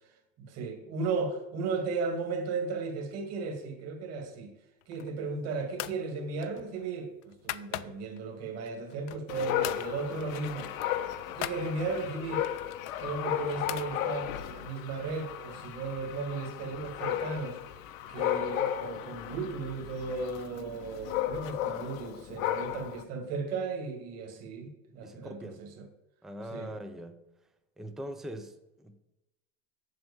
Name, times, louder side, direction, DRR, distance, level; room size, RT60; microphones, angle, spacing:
voice 1, 0.4-4.5 4.9-10.7 11.3-12.5 13.0-17.6 18.1-25.9 26.5-26.7, right 4 dB, 40° right, 2.1 m, -35 dB
sound 1, 4.8-5.3 5.7-6.0 6.4-8.2 8.7-9.3 9.6-9.9 10.2-10.3 10.6-11.6 12.4-13.9, left 16 dB, 60° left, 0.6 m, -40 dB
Dog, 9.3-23.0, left 11 dB, 85° left, 1.1 m, -35 dB
voice 2, 25.0-25.6 26.2-27.2 27.8-29.0, equal, ahead, 0.4 m, -42 dB
7.9 x 7.7 x 7.0 m
supercardioid pair, 150°, 40 cm